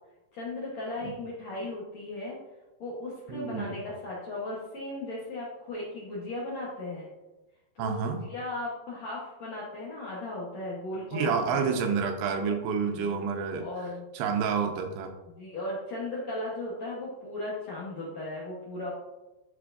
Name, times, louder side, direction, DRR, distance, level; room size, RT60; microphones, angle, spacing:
voice 1, 0.3-2.4 2.8-7.1 7.7-11.9 12.9-13.1 13.6-14.0 15.3-18.9, left 2 dB, 70° left, -6 dB, 1.6 m, -37 dB
voice 2, 3.3-3.8 7.8-8.2 11.1-13.7 14.1-15.1, right 6 dB, 85° right, 4 dB, 2.9 m, -29 dB
11.5 x 4.3 x 2.6 m, 1.1 s
omnidirectional pair, 4.8 m